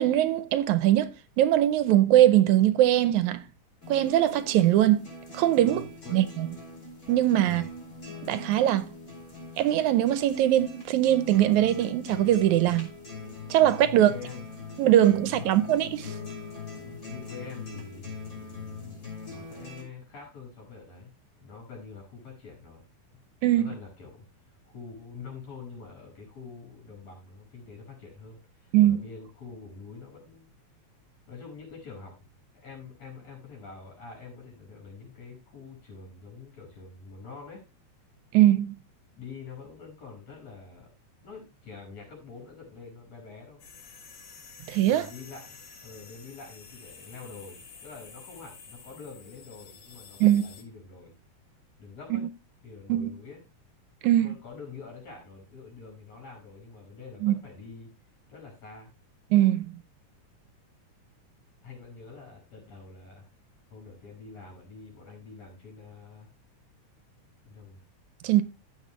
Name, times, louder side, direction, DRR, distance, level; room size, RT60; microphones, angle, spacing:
voice 1, 0.0-3.5 3.9-5.0 5.3-5.8 6.1-6.5 7.1-7.6 8.2-8.9 9.6-12.9 13.5-14.1 14.8-16.2 23.4-23.7 28.7-29.0 38.3-38.8 44.7-45.1 50.2-50.4 52.1-52.2 52.9-53.1 54.0-54.3 57.2-57.4 59.3-59.8 68.2-68.4, right 13 dB, 80° right, 2.0 m, -21 dB
sound 1, 3.8-19.8, left 3 dB, 25° left, 4.2 m, -42 dB
voice 2, 5.7-6.2 7.4-7.7 13.8-14.4 15.2-15.6 16.8-22.9 23.6-24.3 24.6-30.5 31.3-32.3 32.5-37.6 39.1-40.9 41.2-43.6 44.9-51.1 51.8-52.2 52.6-53.4 54.2-57.9 58.3-58.9 61.6-63.3 63.7-66.3 67.4-67.8, left 4 dB, 60° left, 6.5 m, -46 dB
sound 2, 43.6-50.6, left 5 dB, 80° left, 3.7 m, -50 dB
15.0 x 6.1 x 3.0 m
omnidirectional pair, 3.4 m